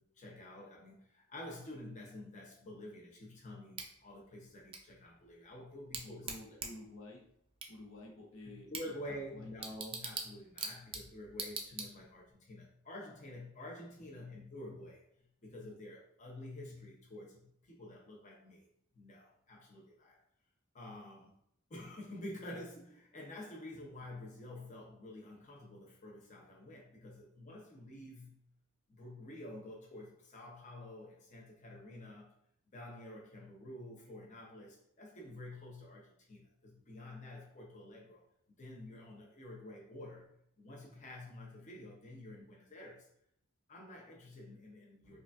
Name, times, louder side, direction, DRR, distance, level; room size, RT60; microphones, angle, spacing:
voice 1, 0.0-6.6 8.4-18.7 18.9-20.2 20.7-21.3 21.7-28.4 28.9-32.4 32.7-38.3 38.6-43.1 43.7-45.2, left 1 dB, 40° left, -2 dB, 0.8 m, -49 dB
Bicycle / Tick, 3.7-12.3, right 4 dB, 25° right, 0.5 m, -46 dB
voice 2, 6.0-7.2 7.7-8.7 9.3-9.5, left 1 dB, 70° left, -1 dB, 0.8 m, -51 dB
4.8 x 2.4 x 2.5 m, 0.70 s
head